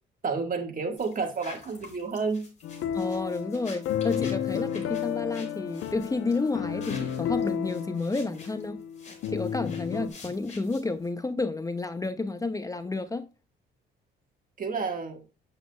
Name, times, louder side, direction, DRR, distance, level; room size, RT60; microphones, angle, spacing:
voice 1, 0.2-2.5 14.6-15.2, right 4 dB, 45° right, 1.7 m, -30 dB
sound 1, 1.0-11.1, left 4 dB, 35° left, 4.8 m, -49 dB
sound 2, 2.6-10.1, left 9 dB, 85° left, 0.9 m, -32 dB
voice 2, 2.9-8.8 9.3-13.3, left 3 dB, 15° left, 0.6 m, -30 dB
8.6 x 7.7 x 2.3 m
cardioid pair, 90°, 20 cm